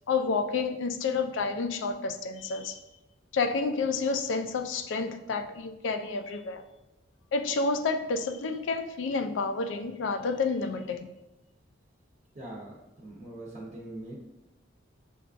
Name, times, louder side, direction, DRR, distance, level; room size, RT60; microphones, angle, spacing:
voice 1, 0.1-2.8 3.3-6.6 7.3-11.1, left 4 dB, 75° left, 7 dB, 0.4 m, -29 dB
voice 2, 12.3-14.1, right 1 dB, 35° right, -4 dB, 0.6 m, -42 dB
6.9 x 2.3 x 2.4 m, 0.94 s
head